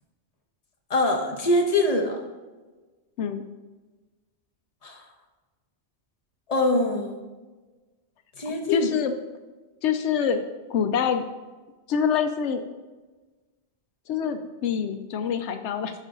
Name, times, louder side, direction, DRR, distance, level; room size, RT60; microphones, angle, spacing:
voice 1, 0.9-2.2 4.8-5.0 6.5-7.2 8.4-8.9, left 1 dB, 35° left, 1 dB, 1.2 m, -23 dB
voice 2, 8.5-9.1 9.8-10.4 10.7-11.2 11.9-12.6 14.1-15.9, left 7 dB, 85° left, 8 dB, 0.9 m, -25 dB
10.0 x 5.4 x 3.8 m, 1.3 s
omnidirectional pair, 1.2 m